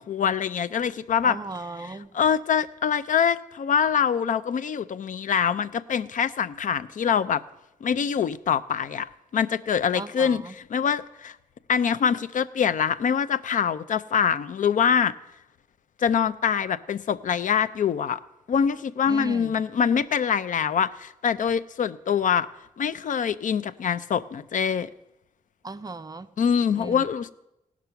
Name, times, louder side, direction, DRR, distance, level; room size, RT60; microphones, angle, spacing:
voice 1, 0.0-1.4 1.8-7.4 7.8-11.3 11.7-15.1 16.0-18.2 18.5-22.5 22.8-24.9 26.4-27.3, left 7 dB, 60° left, 16 dB, 0.4 m, -24 dB
voice 2, 1.2-2.1 9.9-10.5 19.1-19.6 25.6-26.3 26.8-27.0, right 3 dB, 25° right, 11 dB, 0.4 m, -36 dB
17.5 x 6.0 x 5.7 m, 0.89 s
wide cardioid pair, 115°, 15 cm